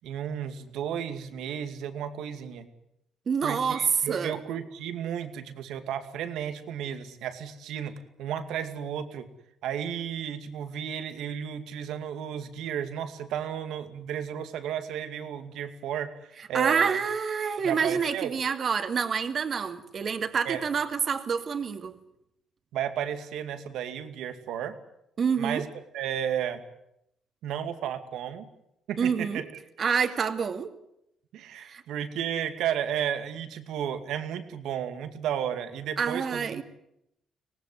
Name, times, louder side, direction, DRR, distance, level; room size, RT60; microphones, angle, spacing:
voice 1, 0.0-2.7 3.4-9.3 9.6-17.0 17.6-18.4 20.4-20.6 22.7-24.8 25.4-26.6 27.4-28.5 28.9-29.5 31.3-36.6, right 9 dB, 85° right, 9 dB, 2.4 m, -33 dB
voice 2, 3.3-3.8 4.1-4.4 16.5-22.0 25.2-25.6 29.0-29.4 29.8-30.7 31.5-31.8 36.0-36.6, right 6 dB, 50° right, 8 dB, 2.4 m, -27 dB
24.0 x 18.5 x 9.7 m, 0.79 s
cardioid pair, 90°, 0 cm